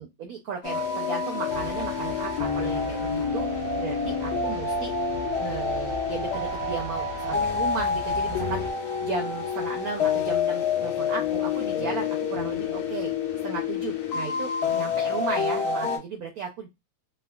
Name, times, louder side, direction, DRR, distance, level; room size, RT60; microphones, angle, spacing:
voice 1, 0.0-3.5 3.8-5.0 5.4-13.1 13.4-16.7, right 5 dB, 70° right, 2 dB, 0.9 m, -35 dB
sound 1, 0.6-16.0, left 5 dB, 65° left, 1.3 m, -28 dB
sound 2, 1.5-8.7, right 1 dB, 90° right, 1.4 m, -40 dB
3.4 x 2.1 x 2.2 m, 0.20 s
omnidirectional pair, 2.0 m